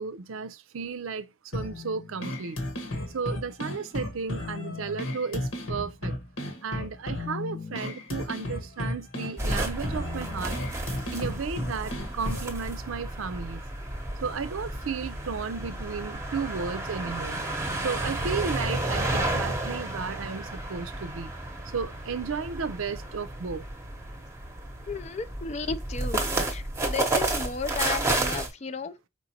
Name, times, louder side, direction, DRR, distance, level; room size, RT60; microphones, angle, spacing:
voice 1, 0.0-2.6 3.1-6.1 6.6-10.6 11.1-13.6 14.2-17.4 17.8-21.3 21.7-23.6, right 5 dB, 80° right, 0.6 m, -34 dB
sound 1, 1.5-12.5, left 1 dB, 80° left, 1.4 m, -34 dB
sound 2, 9.4-28.5, right 2 dB, 15° right, 0.8 m, -32 dB
voice 2, 24.9-28.9, left 4 dB, 35° left, 0.4 m, -34 dB
4.8 x 3.9 x 2.8 m
head